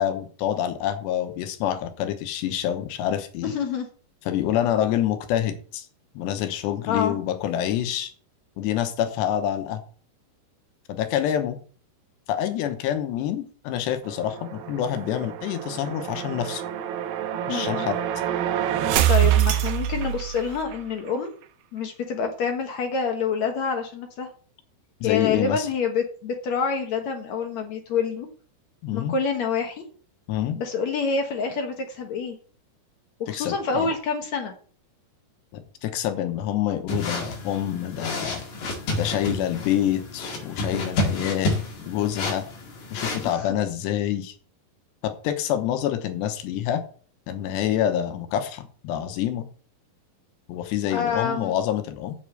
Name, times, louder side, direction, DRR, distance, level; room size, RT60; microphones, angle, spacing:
voice 1, 0.0-3.5 4.3-5.9 6.1-8.1 8.6-9.8 10.9-11.6 12.3-16.6 17.5-18.0 25.0-25.7 28.8-29.1 30.3-30.6 33.3-33.5 33.8-33.9 35.5-38.4 38.9-41.6 41.9-42.5 42.9-44.3 45.0-46.8 47.3-49.4 50.5-52.2, left 10 dB, 80° left, 8 dB, 3.2 m, -27 dB
voice 2, 3.4-3.9 6.9-7.2 17.5-17.9 19.1-21.3 21.7-24.3 25.0-28.3 28.9-29.8 30.5-32.4 33.2-34.5 43.2-43.5 50.9-51.5, left 5 dB, 65° left, 4 dB, 1.8 m, -27 dB
sound 1, 14.1-20.8, right 12 dB, 75° right, 2.3 m, -26 dB
sound 2, 36.9-43.3, left 2 dB, 50° left, 3.1 m, -30 dB
7.8 x 6.7 x 7.8 m, 0.43 s
omnidirectional pair, 4.9 m